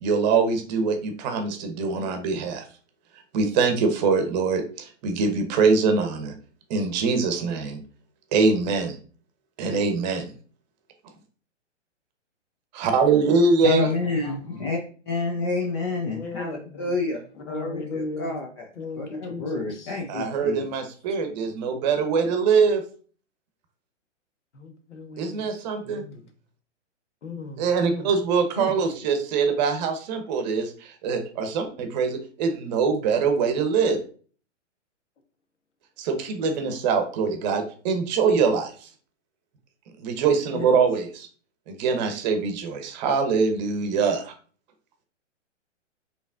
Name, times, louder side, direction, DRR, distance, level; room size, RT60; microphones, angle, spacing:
voice 1, 0.0-2.6 3.3-6.3 6.7-7.8 8.3-9.0 9.6-10.3 12.7-13.9 20.1-22.8 25.2-26.0 27.6-34.0 36.0-38.9 40.0-41.3 41.7-44.3, right 5 dB, 35° right, 6 dB, 0.9 m, -23 dB
voice 2, 13.6-14.8 15.1-17.2 17.5-18.6 19.0-20.6 21.1-21.2, left 3 dB, 25° left, 0 dB, 0.4 m, -29 dB
voice 3, 16.1-17.0 17.4-18.4 18.8-20.0 24.5-25.5 25.8-26.3 27.2-28.1 28.6-28.7 40.5-40.7, left 3 dB, 70° left, 5 dB, 1.2 m, -36 dB
5.1 x 3.2 x 2.4 m, 0.41 s
hypercardioid pair, 125°, 37 cm